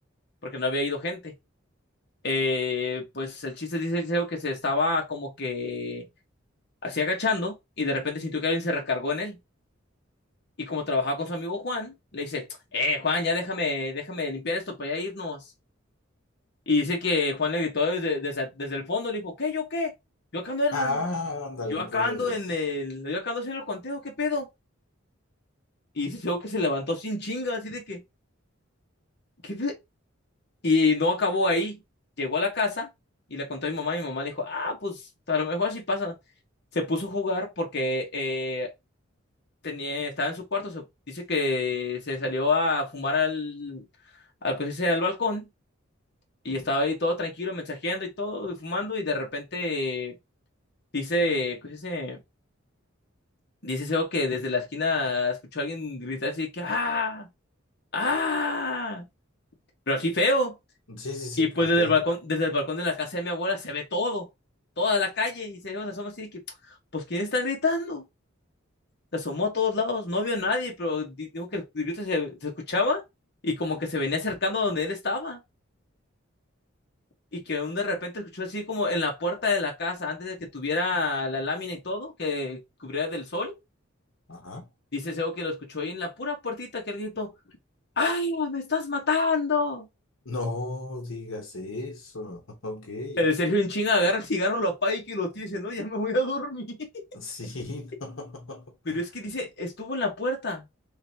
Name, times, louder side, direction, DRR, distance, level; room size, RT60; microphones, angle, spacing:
voice 1, 0.4-1.3 2.2-6.0 6.8-9.4 10.6-12.5 12.7-15.4 16.7-19.9 20.3-20.9 21.7-24.5 25.9-28.0 29.4-29.8 30.6-31.8 32.2-32.9 33.3-35.0 35.3-36.1 36.7-38.7 39.6-43.8 44.4-45.4 46.4-50.1 50.9-52.2 53.6-57.3 57.9-59.0 59.9-60.5 61.4-64.3 64.8-66.4 66.9-68.0 69.1-73.0 73.4-75.4 77.3-83.6 84.9-87.3 88.0-89.9 93.2-96.9 98.9-100.6, left 2 dB, 55° left, 1.2 m, -28 dB
voice 2, 20.7-22.4 60.9-62.0 84.3-84.7 90.2-93.3 97.1-99.0, left 2 dB, 75° left, 1.1 m, -34 dB
3.9 x 3.3 x 2.8 m
head